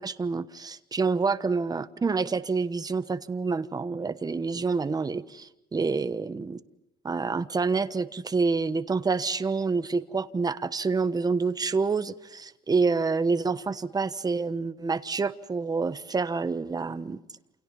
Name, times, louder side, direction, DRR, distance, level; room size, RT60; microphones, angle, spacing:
voice 1, 0.0-6.6 7.0-17.2, right 4 dB, 20° right, 1.2 m, -27 dB
29.0 x 28.5 x 5.6 m
cardioid pair, 110°, 17 cm